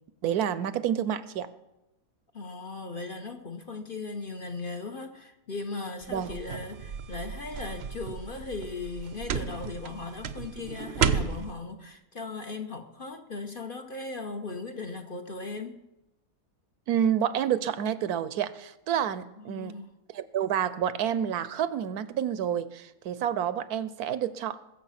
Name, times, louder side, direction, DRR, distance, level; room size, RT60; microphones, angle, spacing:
voice 1, 0.2-1.5 6.1-6.3 16.9-19.7 20.1-24.6, right 9 dB, 75° right, 1.1 m, -29 dB
voice 2, 2.3-15.8 19.4-19.9, left 3 dB, 40° left, 0.9 m, -38 dB
sound 1, 6.0-11.5, right 7 dB, 55° right, 0.8 m, -33 dB
21.0 x 7.5 x 5.8 m
omnidirectional pair, 1.7 m